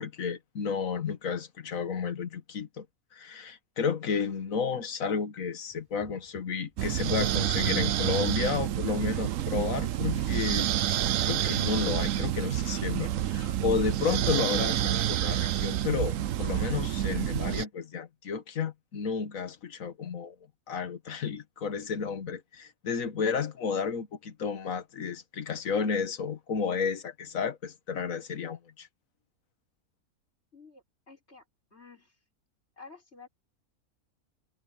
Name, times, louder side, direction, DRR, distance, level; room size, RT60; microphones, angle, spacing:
voice 1, 0.0-2.8 3.1-20.3 20.7-28.9, left 6 dB, 65° left, 1.6 m, -32 dB
sound 1, 5.7-11.7, equal, 15° right, 4.5 m, -57 dB
sound 2, 6.8-17.6, right 12 dB, 70° right, 1.0 m, -28 dB
voice 2, 30.5-31.4 31.7-32.1 32.8-33.3, left 4 dB, 45° left, 6.1 m, -51 dB
omnidirectional pair, 1.5 m